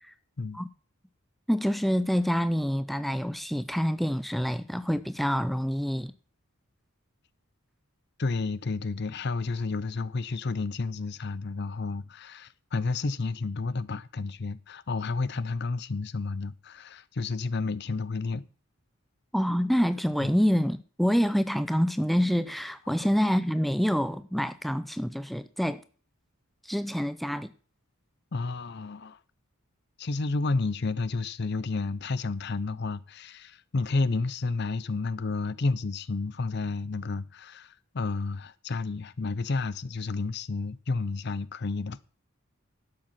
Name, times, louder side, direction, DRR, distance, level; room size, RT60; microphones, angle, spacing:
voice 1, 1.5-6.1 19.3-25.8 26.6-27.5, equal, ahead, 0.5 m, -27 dB
voice 2, 8.2-18.5 20.2-20.3 23.0-23.1 28.3-29.2 30.0-42.0, left 3 dB, 50° left, 0.6 m, -31 dB
12.0 x 7.8 x 5.7 m
head